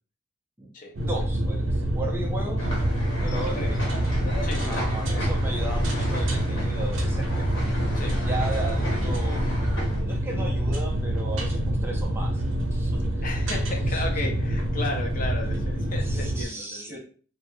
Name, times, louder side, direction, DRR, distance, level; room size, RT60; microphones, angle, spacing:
sound 1, 0.9-16.4, right 1 dB, 70° right, 0.5 m, -26 dB
voice 1, 1.0-2.7 3.2-3.9 4.7-7.5 8.2-9.5 10.0-12.4 12.7-13.2 13.5-13.6 13.9-14.1 16.0-17.0, right 2 dB, 10° right, -1 dB, 0.4 m, -36 dB
sound 2, 2.6-10.0, equal, 70° left, 0.8 m, -32 dB
voice 2, 4.4-5.1 7.9-8.2 13.2-17.0, left 2 dB, 45° left, 2 dB, 0.5 m, -35 dB
2.2 x 2.0 x 3.0 m, 0.43 s
head